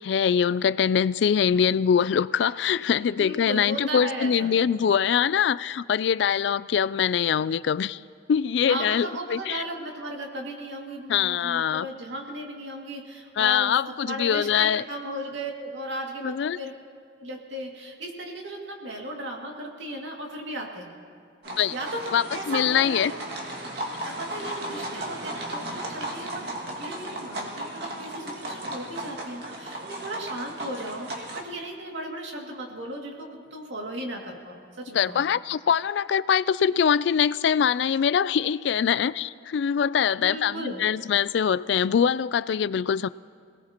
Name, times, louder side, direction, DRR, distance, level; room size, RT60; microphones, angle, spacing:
voice 1, 0.0-8.0 8.3-9.6 11.1-11.9 13.4-14.8 16.2-16.6 21.5-21.7 22.1-23.1 34.9-43.1, left 8 dB, 65° left, 18 dB, 0.3 m, -23 dB
voice 2, 3.2-4.6 8.7-16.7 17.2-21.0 21.7-23.1 23.9-35.2 40.2-40.8, right 1 dB, 80° right, 0 dB, 2.3 m, -36 dB
sound 1, 21.4-31.4, right 1 dB, 60° right, 2.1 m, -35 dB
26.0 x 18.5 x 2.9 m, 2.2 s
head